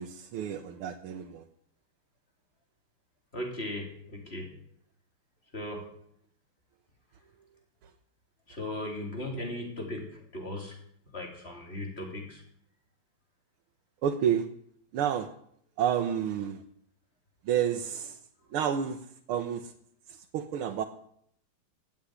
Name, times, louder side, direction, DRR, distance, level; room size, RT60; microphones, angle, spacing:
voice 1, 0.0-1.4 14.0-14.5 14.9-15.3 15.8-16.6 17.5-18.2 18.5-19.0 19.3-19.7 20.3-20.8, right 9 dB, 90° right, 5 dB, 1.8 m, -29 dB
voice 2, 3.3-4.6 5.5-5.9 8.5-10.8 11.1-12.4, left 1 dB, 30° left, 1 dB, 3.9 m, -37 dB
16.0 x 7.5 x 10.0 m, 0.67 s
omnidirectional pair, 2.3 m